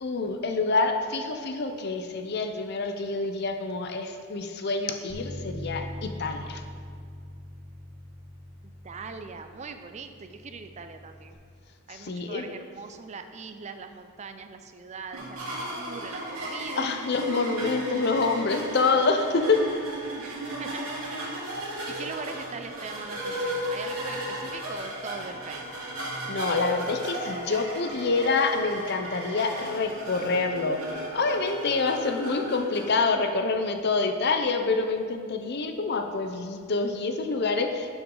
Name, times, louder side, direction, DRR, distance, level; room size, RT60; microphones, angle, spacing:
voice 1, 0.0-6.6 11.9-12.5 16.8-19.6 26.3-30.8 31.1-37.9, left 3 dB, 50° left, 5 dB, 0.6 m, -27 dB
Bass guitar, 5.1-11.3, equal, 25° left, 1.2 m, -42 dB
voice 2, 8.8-11.4 11.9-16.9 20.2-20.8 21.9-25.6, right 4 dB, 30° right, 8 dB, 0.4 m, -41 dB
sound 1, 15.1-32.9, right 1 dB, 80° right, 2.2 m, -35 dB
12.0 x 6.1 x 3.8 m, 2.1 s
head